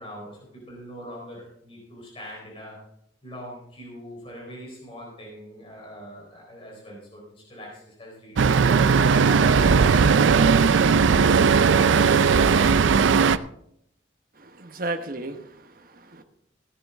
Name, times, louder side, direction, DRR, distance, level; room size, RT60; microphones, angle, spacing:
voice 1, 0.0-2.8 3.2-11.7 14.8-14.9, equal, 30° left, -3 dB, 4.0 m, -43 dB
Traffic noise roadway noise, 8.4-13.4, right 5 dB, 80° right, 0.5 m, -18 dB
voice 2, 14.3-16.2, right 2 dB, 50° right, 7 dB, 1.0 m, -34 dB
15.5 x 10.0 x 3.6 m, 0.72 s
head